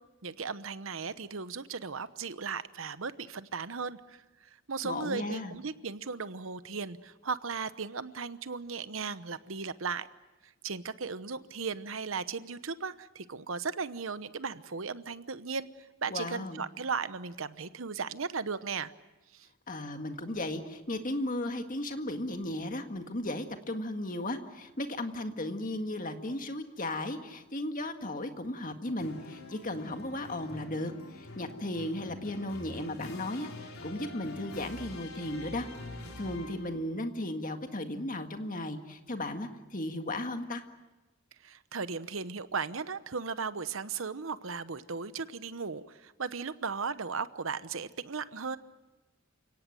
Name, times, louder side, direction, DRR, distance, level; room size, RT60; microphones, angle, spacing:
voice 1, 0.2-10.1 10.4-15.7 16.0-18.9 19.3-19.5 41.4-48.6, right 5 dB, 70° right, 14 dB, 1.0 m, -36 dB
voice 2, 4.8-5.6 16.1-16.6 19.7-35.7 35.9-40.6, left 1 dB, 40° left, 6 dB, 1.8 m, -35 dB
sound 1, 29.0-36.9, left 2 dB, 75° left, 4.2 m, -46 dB
29.0 x 17.5 x 9.1 m, 1.1 s
head